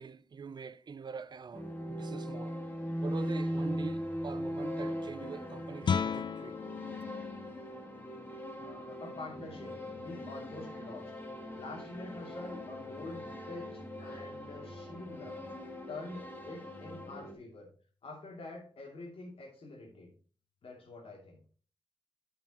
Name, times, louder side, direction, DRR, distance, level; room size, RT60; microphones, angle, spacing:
voice 1, 0.0-2.6 3.0-6.6, right 5 dB, 45° right, 0.5 m, -44 dB
sound 1, 1.5-17.3, equal, 20° left, 2.0 m, -40 dB
Guitar, 5.8-11.4, left 6 dB, 55° left, 0.4 m, -39 dB
voice 2, 8.6-11.1 11.6-15.4 15.9-17.7 18.0-20.1 20.6-21.4, left 2 dB, 75° left, 2.8 m, -46 dB
11.5 x 5.8 x 3.0 m
wide cardioid pair, 145°, 10 cm